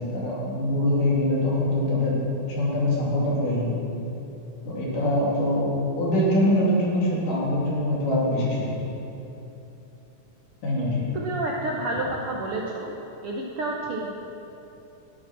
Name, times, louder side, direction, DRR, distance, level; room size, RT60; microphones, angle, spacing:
voice 1, 0.0-2.2 2.5-3.8 4.7-5.7 6.0-8.9 10.6-11.0, left 1 dB, 75° left, -6 dB, 4.6 m, -23 dB
voice 2, 11.1-12.9 13.2-14.1, right 2 dB, 65° right, -2 dB, 1.5 m, -29 dB
12.5 x 11.5 x 6.1 m, 2.9 s
omnidirectional pair, 3.7 m